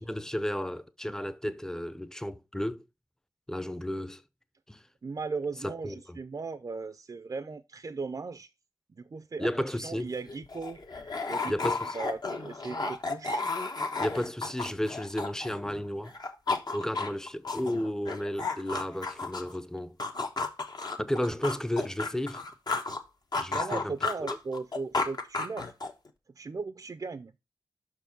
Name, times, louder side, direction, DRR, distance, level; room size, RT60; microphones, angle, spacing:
voice 1, 0.1-2.8 3.5-4.2 4.7-4.8 5.6-6.2 9.4-10.1 11.5-12.0 14.0-16.2 16.7-20.0 21.0-22.4 23.4-23.9 24.3-24.4, left 1 dB, 5° left, 0.6 m, -33 dB
voice 2, 5.0-8.5 9.0-10.8 11.3-13.5 23.5-25.7 26.3-27.3, right 4 dB, 45° right, 0.5 m, -37 dB
sound 1, 9.9-10.0 10.2-15.8 16.1-19.6 20.0-23.0 23.3-26.1, left 3 dB, 55° left, 1.1 m, -33 dB
5.9 x 4.7 x 5.9 m
cardioid pair, 65°, 8 cm